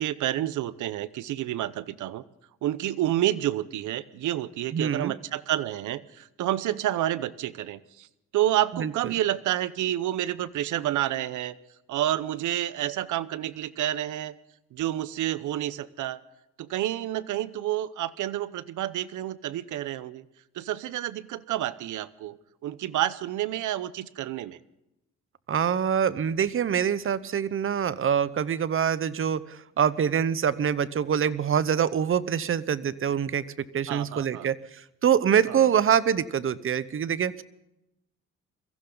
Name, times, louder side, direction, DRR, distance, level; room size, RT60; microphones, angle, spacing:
voice 1, 0.0-2.2 2.6-8.1 8.3-11.5 11.9-14.3 14.7-16.2 16.6-20.2 20.5-22.4 22.6-24.6 33.9-34.5 35.5-35.6, right 13 dB, 80° right, 17 dB, 0.9 m, -29 dB
voice 2, 4.7-5.1 8.8-8.9 25.5-33.4 33.7-34.6 35.0-37.4, right 8 dB, 45° right, 17 dB, 0.9 m, -25 dB
22.5 x 15.5 x 3.9 m, 0.90 s
cardioid pair, 90°, 30 cm